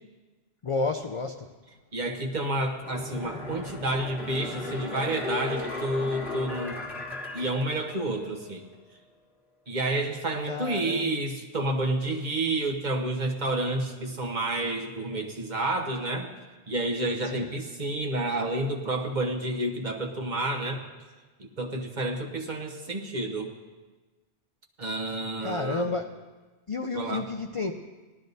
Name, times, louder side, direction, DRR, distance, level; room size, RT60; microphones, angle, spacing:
voice 1, 0.6-1.5 10.4-11.4 17.3-17.5 25.4-26.1 26.7-27.7, left 3 dB, 45° left, 4 dB, 0.4 m, -31 dB
voice 2, 1.9-6.9 7.3-8.6 9.7-16.3 16.7-20.8 21.4-23.5 24.8-25.9 26.9-27.3, right 2 dB, 45° right, 2 dB, 1.1 m, -30 dB
sound 1, 2.8-8.4 8.7-8.8, left 2 dB, ahead, 1.6 m, -36 dB
18.5 x 12.5 x 2.7 m, 1.3 s
omnidirectional pair, 1.1 m